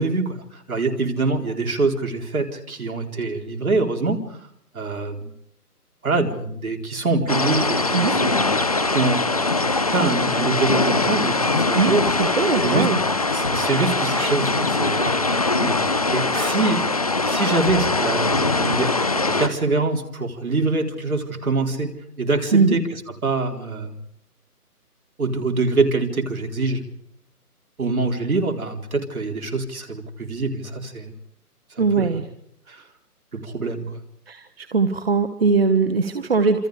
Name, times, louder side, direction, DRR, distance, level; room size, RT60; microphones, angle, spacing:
voice 1, 0.0-4.2 4.7-5.3 6.0-8.6 8.9-9.2 9.9-12.1 12.6-12.9 13.3-15.8 16.1-16.8 17.2-18.9 19.3-21.9 22.2-22.8 23.2-24.0 25.2-26.8 27.8-31.1 31.8-32.1 32.7-32.8 33.3-34.0, right 3 dB, 65° right, 3 dB, 4.3 m, -24 dB
sound 1, 7.3-19.5, left 3 dB, 25° left, 0.9 m, -22 dB
voice 2, 11.7-13.0 22.5-22.8 31.8-32.2 34.3-36.7, right 4 dB, 40° right, 9 dB, 1.3 m, -20 dB
27.5 x 27.0 x 5.1 m, 0.71 s
hypercardioid pair, 170°, 47 cm